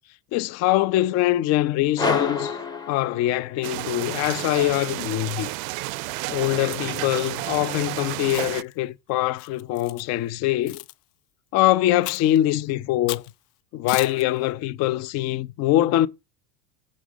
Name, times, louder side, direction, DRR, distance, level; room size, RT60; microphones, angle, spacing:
voice 1, 0.3-2.6 2.9-5.5 6.3-10.8 11.5-13.2 13.7-16.1, left 15 dB, 40° left, 0.4 m, -23 dB
sound 1, 2.0-3.7, left 3 dB, 10° left, 0.8 m, -28 dB
sound 2, 3.6-8.6, right 19 dB, 65° right, 0.5 m, -31 dB
Chewing mastication, 8.2-8.7 9.4-10.0 10.7-10.9 12.0-12.4 13.1-13.3 13.9-14.2, left 18 dB, 80° left, 0.6 m, -35 dB
7.3 x 5.0 x 4.9 m
supercardioid pair, 135°, 46 cm